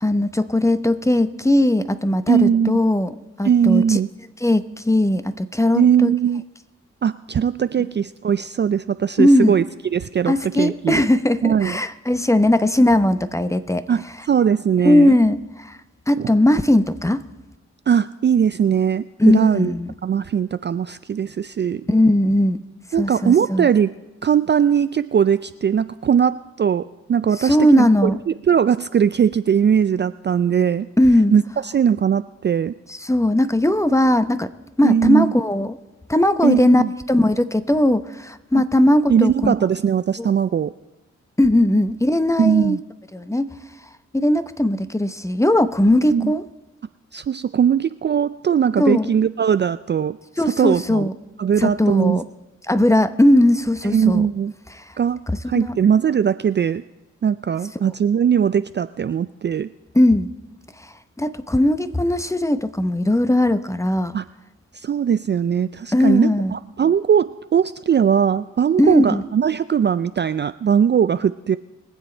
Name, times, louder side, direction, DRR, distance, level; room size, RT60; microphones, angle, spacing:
voice 1, 0.0-4.0 4.4-6.1 9.2-9.6 10.3-13.8 14.8-15.8 16.1-17.2 19.2-19.9 21.9-22.6 23.0-23.7 27.4-28.2 31.0-31.3 32.9-34.5 34.8-35.8 36.1-39.5 40.2-40.3 41.4-42.8 43.1-43.5 44.1-46.4 48.8-49.1 50.4-51.1 51.6-52.2 52.7-54.3 54.8-54.9 55.4-55.8 59.9-60.3 60.8-64.2 65.9-66.5 68.8-69.2, left 1 dB, 10° left, 12 dB, 0.8 m, -18 dB
voice 2, 2.3-2.7 3.4-4.1 5.7-6.4 7.0-9.6 9.9-11.0 11.4-11.8 13.9-15.2 16.2-16.3 17.9-19.7 20.0-21.8 22.9-23.9 24.2-30.9 31.3-32.7 34.8-35.3 36.4-36.9 38.5-38.6 39.1-40.7 42.4-42.8 45.9-46.3 47.1-50.2 50.4-51.1 51.4-52.2 53.8-54.5 55.0-55.2 55.5-56.8 57.2-59.7 64.1-64.2 64.7-71.6, right 8 dB, 35° right, 13 dB, 0.4 m, -19 dB
22.5 x 7.6 x 4.5 m, 1.0 s
cardioid pair, 50°, 30 cm